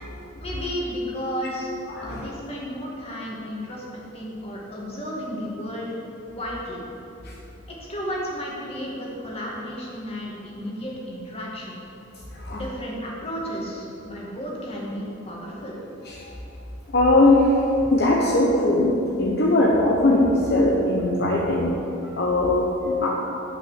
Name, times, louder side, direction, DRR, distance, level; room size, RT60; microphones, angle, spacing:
voice 1, 0.4-1.7 2.0-5.9 6.3-6.8 7.8-11.8 12.5-15.8, equal, 30° left, -4 dB, 2.1 m, -33 dB
voice 2, 1.9-2.2 12.5-12.6 16.9-17.4 17.9-21.7 22.2-23.1, left 2 dB, 55° left, -2 dB, 0.9 m, -20 dB
8.8 x 5.8 x 8.2 m, 3.0 s
head